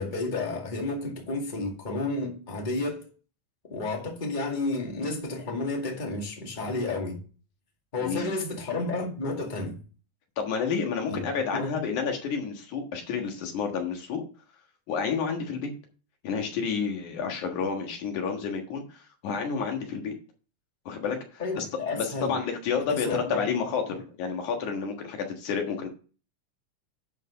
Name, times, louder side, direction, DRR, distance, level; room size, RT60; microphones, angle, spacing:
voice 1, 0.0-3.1 3.7-7.2 7.9-9.8 11.1-11.2 11.5-11.8 21.4-22.4 22.9-23.5 23.9-24.0, left 3 dB, 20° left, 1.9 m, -31 dB
voice 2, 10.4-14.2 14.9-15.7 16.2-20.1 20.9-21.7 22.0-25.9, left 6 dB, 85° left, 3.0 m, -30 dB
10.5 x 4.7 x 5.6 m
omnidirectional pair, 3.4 m